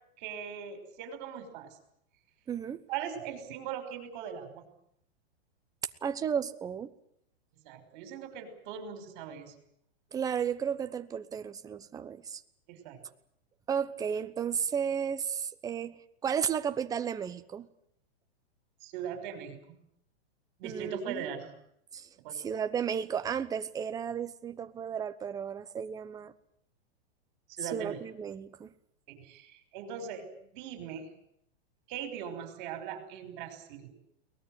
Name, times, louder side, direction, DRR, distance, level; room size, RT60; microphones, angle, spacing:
voice 1, 0.2-1.8 2.9-4.6 7.6-9.5 12.7-13.0 18.8-19.8 20.6-21.5 22.2-22.4 27.5-28.0 29.1-30.3 30.5-31.1 31.9-33.9, right 8 dB, 45° right, 8 dB, 5.8 m, -40 dB
voice 2, 2.5-2.8 6.0-6.9 10.1-12.4 13.7-15.9 16.2-17.7 20.6-21.2 21.9-22.1 22.3-26.3 27.6-28.7, right 7 dB, 10° right, 9 dB, 0.9 m, -33 dB
23.0 x 19.0 x 9.3 m, 0.72 s
hypercardioid pair, 155°, 32 cm